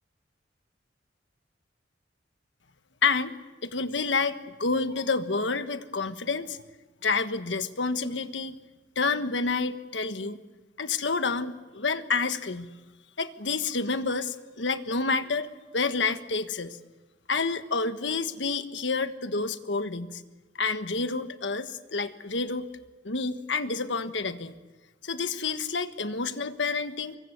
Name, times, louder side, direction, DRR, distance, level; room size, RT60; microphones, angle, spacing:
voice 1, 3.0-3.3 3.6-6.6 7.0-8.6 8.9-10.4 10.8-12.7 13.2-16.8 17.3-20.2 20.6-22.7 23.0-24.5 25.0-27.2, left 4 dB, 80° left, 10 dB, 1.4 m, -29 dB
24.0 x 23.5 x 8.0 m, 1.2 s
head